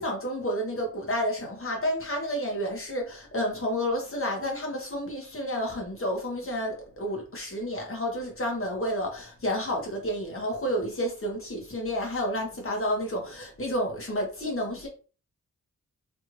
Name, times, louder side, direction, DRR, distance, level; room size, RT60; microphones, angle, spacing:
voice 1, 0.0-14.9, equal, 40° left, 1.4 m, -30 dB
3.4 x 2.6 x 3.1 m
wide cardioid pair, 70°, 33 cm